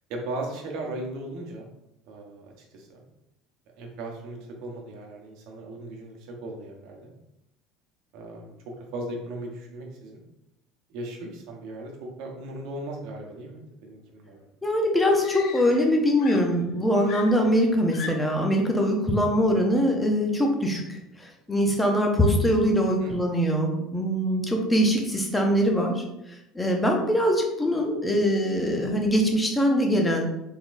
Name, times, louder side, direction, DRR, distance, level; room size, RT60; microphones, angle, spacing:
voice 1, 0.1-1.7 2.1-3.0 3.8-7.1 8.1-10.2 10.9-11.9 12.2-14.4 23.0-23.2, right 1 dB, 65° right, 0 dB, 1.0 m, -37 dB
Screaming, 14.3-14.4 15.2-15.9 16.2-18.5 19.5-19.7, left 6 dB, 60° left, 0.5 m, -40 dB
voice 2, 14.6-26.0 26.5-30.2, equal, 10° left, 1 dB, 0.6 m, -23 dB
4.0 x 3.5 x 2.6 m, 0.88 s
cardioid pair, 155°, 0 cm